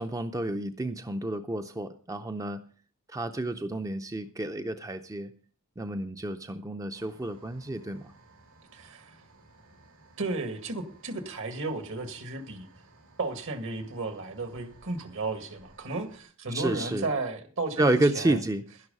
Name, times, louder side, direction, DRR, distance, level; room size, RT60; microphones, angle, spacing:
voice 1, 0.0-2.6 3.1-5.3 5.8-8.0 16.5-17.1 17.8-18.6, right 1 dB, 15° right, 0.5 m, -30 dB
sound 1, 6.9-16.2, right 2 dB, 85° right, 4.5 m, -58 dB
voice 2, 8.7-9.2 10.2-12.7 13.2-18.4, right 3 dB, 65° right, 1.8 m, -34 dB
11.5 x 11.0 x 5.3 m
head